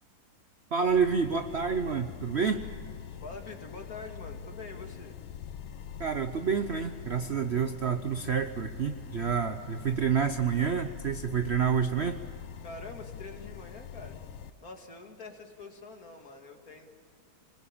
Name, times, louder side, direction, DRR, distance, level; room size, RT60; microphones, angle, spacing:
voice 1, 0.7-2.6 6.0-12.2, right 6 dB, 80° right, 8 dB, 0.5 m, -28 dB
sound 1, 0.8-14.5, left 8 dB, 80° left, 1.6 m, -44 dB
voice 2, 3.2-5.2 12.6-14.2 14.6-16.9, left 3 dB, 45° left, 4 dB, 2.5 m, -45 dB
25.5 x 21.0 x 8.7 m, 2.4 s
omnidirectional pair, 2.2 m